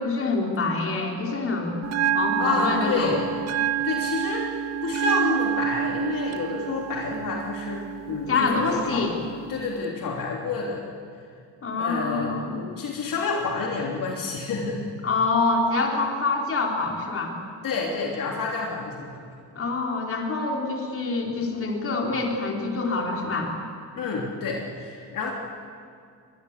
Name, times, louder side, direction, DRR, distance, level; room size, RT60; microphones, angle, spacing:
voice 1, 0.0-1.7 2.1-3.2 8.3-9.1 11.6-12.5 15.0-17.3 19.6-23.5, left 3 dB, 35° left, 0 dB, 4.4 m, -26 dB
Bell, 1.8-9.8, right 10 dB, 45° right, 0.7 m, -29 dB
voice 2, 2.4-3.2 3.8-4.5 4.8-9.1 9.5-10.8 11.8-14.8 17.6-19.2 24.0-25.3, left 4 dB, 60° left, -1 dB, 3.4 m, -29 dB
24.5 x 20.5 x 8.4 m, 2.3 s
cardioid pair, 130°, 37 cm